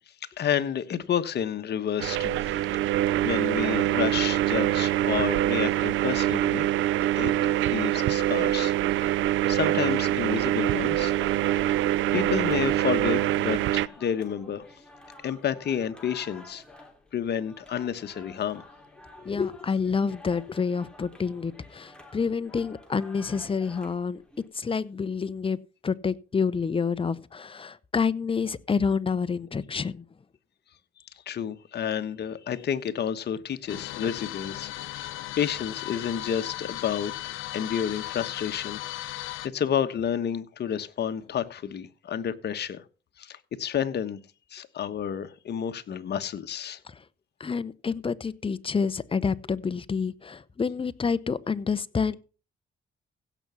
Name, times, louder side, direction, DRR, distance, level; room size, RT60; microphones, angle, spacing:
voice 1, 0.4-2.6 3.2-6.7 7.2-9.2 9.5-11.1 12.1-14.7 15.2-16.6 17.1-18.6 31.3-38.8 39.1-42.8 43.2-44.2 44.5-46.8, left 8 dB, 55° left, 1.2 m, -30 dB
sound 1, 2.0-13.9, right 14 dB, 80° right, 0.5 m, -24 dB
sound 2, 10.7-24.5, left 1 dB, 5° left, 3.4 m, -50 dB
voice 2, 19.2-24.2 24.5-25.6 25.8-30.0 47.4-52.2, left 5 dB, 25° left, 0.8 m, -28 dB
sound 3, 33.7-39.5, left 15 dB, 85° left, 0.7 m, -36 dB
16.5 x 6.1 x 5.6 m
cardioid pair, 90°, 20 cm